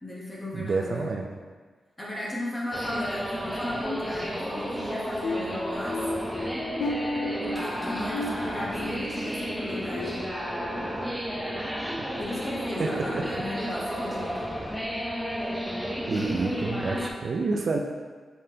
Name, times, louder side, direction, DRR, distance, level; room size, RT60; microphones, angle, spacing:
voice 1, 0.0-1.1 2.0-6.0 7.4-10.2 12.2-14.5 16.1-17.0, left 1 dB, 15° left, -5 dB, 0.9 m, -36 dB
voice 2, 0.5-1.3 12.8-13.2 16.1-17.0 17.2-17.8, right 4 dB, 55° right, 1 dB, 0.4 m, -28 dB
sound 1, 2.7-17.1, equal, ahead, 0.5 m, -32 dB
sound 2, 5.2-10.9 11.3-11.6 12.1-12.3, left 2 dB, 80° left, 0.4 m, -35 dB
5.4 x 3.2 x 2.8 m, 1.5 s
cardioid pair, 100°, 0 cm